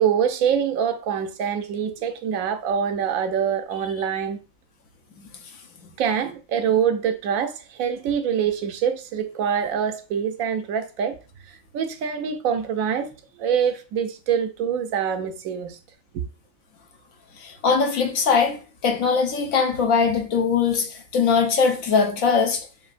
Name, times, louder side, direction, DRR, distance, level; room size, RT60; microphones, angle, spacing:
voice 1, 0.0-4.4 6.0-11.2 11.5-13.1 13.4-15.8, right 8 dB, 90° right, 1.0 m, -25 dB
voice 2, 17.3-22.7, left 5 dB, 90° left, 1.3 m, -21 dB
6.9 x 2.6 x 2.5 m
omnidirectional pair, 1.4 m